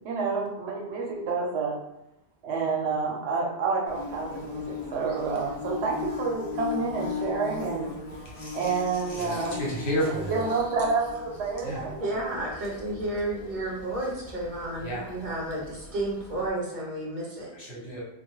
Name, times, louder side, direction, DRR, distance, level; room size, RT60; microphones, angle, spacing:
voice 1, 0.0-1.7 2.4-7.9 8.5-9.6 10.1-11.9, right 4 dB, 80° right, -2 dB, 0.9 m, -29 dB
Bird / Buzz, 3.9-16.5, left 5 dB, 40° left, 0.6 m, -39 dB
voice 2, 8.2-10.4 11.6-11.9 14.8-15.1 17.5-18.0, equal, 70° left, -5 dB, 1.1 m, -32 dB
voice 3, 12.0-17.5, right 1 dB, 50° right, -3 dB, 0.7 m, -32 dB
2.3 x 2.2 x 2.9 m, 0.85 s
omnidirectional pair, 1.1 m